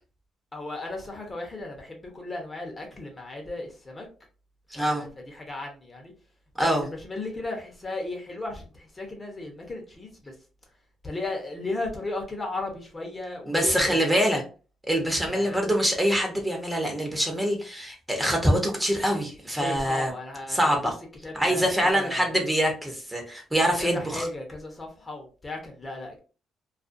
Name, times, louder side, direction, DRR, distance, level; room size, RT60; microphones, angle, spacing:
voice 1, 0.5-4.1 4.7-6.1 6.6-10.3 11.0-14.4 15.2-15.7 19.6-20.9 21.2-22.4 23.8-26.2, left 2 dB, 25° left, 0.8 m, -35 dB
voice 2, 4.7-5.1 6.6-6.9 13.5-14.4 14.9-20.1 20.5-20.9 21.3-24.2, equal, 10° right, 0.8 m, -24 dB
2.4 x 2.3 x 2.5 m
cardioid pair, 90°, 0 cm